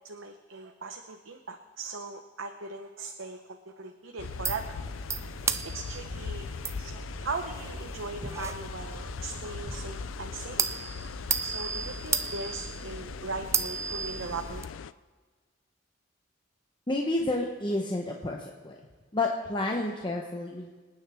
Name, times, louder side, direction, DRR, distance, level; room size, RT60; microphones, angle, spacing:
voice 1, 0.0-4.8 5.6-6.5 6.8-10.7 11.4-14.7, right 3 dB, 85° right, 4 dB, 0.9 m, -39 dB
sound 1, 4.2-14.9, left 6 dB, 85° left, 0.4 m, -40 dB
sound 2, 4.2-14.6, right 5 dB, 15° right, 0.3 m, -35 dB
voice 2, 16.9-18.8 19.1-20.8, left 2 dB, 25° left, 1 dB, 0.9 m, -30 dB
26.0 x 9.2 x 3.5 m, 1.4 s
head